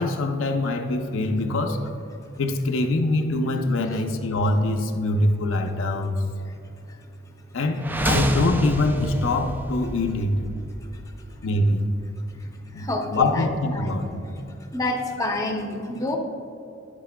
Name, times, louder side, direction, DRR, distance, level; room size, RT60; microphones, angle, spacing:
voice 1, 0.0-1.8 2.4-6.2 7.5-10.4 11.4-11.9 12.7-14.1, left 2 dB, 65° left, 4 dB, 0.6 m, -24 dB
sound 1, 7.8-11.7, right 1 dB, 10° right, 0.3 m, -28 dB
voice 2, 12.3-13.5 13.7-14.0 14.6-16.2, left 2 dB, 15° left, 2 dB, 0.6 m, -29 dB
9.9 x 8.1 x 2.2 m, 2.8 s
head